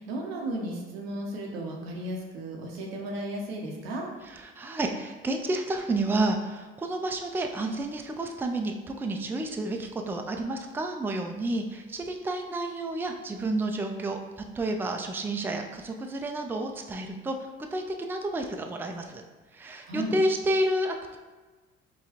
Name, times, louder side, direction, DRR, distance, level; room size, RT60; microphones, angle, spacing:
voice 1, 0.0-4.1 19.9-20.1, right 1 dB, 85° right, -1 dB, 0.7 m, -34 dB
voice 2, 4.3-17.4 17.7-19.2 19.5-21.2, right 1 dB, 5° right, 4 dB, 0.4 m, -30 dB
4.8 x 2.3 x 2.8 m, 1.3 s
hypercardioid pair, 55°, 30 cm